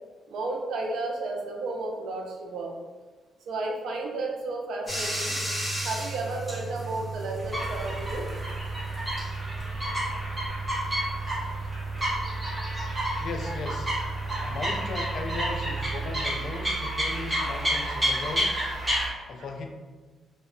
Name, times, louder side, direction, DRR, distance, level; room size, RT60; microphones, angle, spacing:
voice 1, 0.3-2.8 3.5-5.4 5.8-8.3, right 2 dB, 70° right, 1 dB, 0.4 m, -32 dB
Bathtub (filling or washing), 4.9-16.0, right 3 dB, 15° left, 1.0 m, -35 dB
sound 1, 7.4-19.1, right 1 dB, 10° right, 0.7 m, -30 dB
voice 2, 13.2-13.9 14.4-18.7 19.3-19.7, left 3 dB, 55° left, 3 dB, 0.3 m, -37 dB
2.1 x 2.0 x 3.6 m, 1.3 s
cardioid pair, 155°, 0 cm